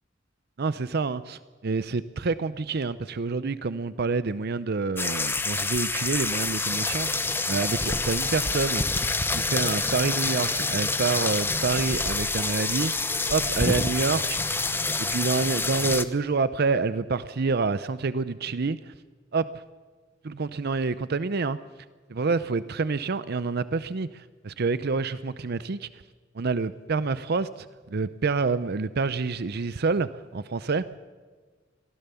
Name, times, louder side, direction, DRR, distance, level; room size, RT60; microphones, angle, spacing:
voice 1, 0.6-8.8 9.3-12.9 13.3-14.6 15.1-18.9 19.3-19.6 20.2-21.6 22.1-25.9 26.3-31.0, right 4 dB, 55° right, 15 dB, 0.6 m, -27 dB
sound 1, 5.0-16.0, left 3 dB, 10° left, 0.8 m, -27 dB
23.0 x 16.0 x 7.0 m, 1.4 s
head